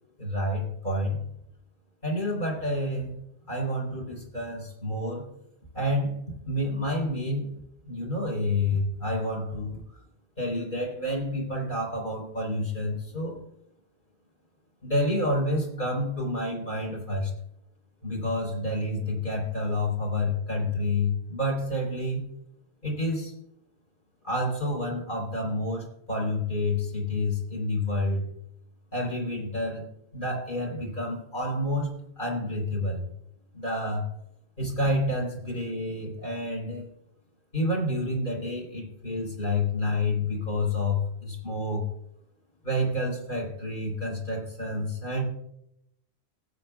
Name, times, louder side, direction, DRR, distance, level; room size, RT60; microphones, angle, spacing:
voice 1, 0.2-1.2 2.0-3.2 3.5-5.3 5.7-7.5 7.8-10.0 10.4-13.4 14.8-17.3 18.0-22.3 22.8-23.3 24.2-28.3 28.9-29.9 30.1-33.1 33.5-34.1 34.6-36.9 37.5-41.9 42.6-45.2, left 1 dB, 50° left, -1 dB, 4.3 m, -29 dB
20.0 x 8.6 x 2.3 m, 0.77 s
omnidirectional pair, 1.1 m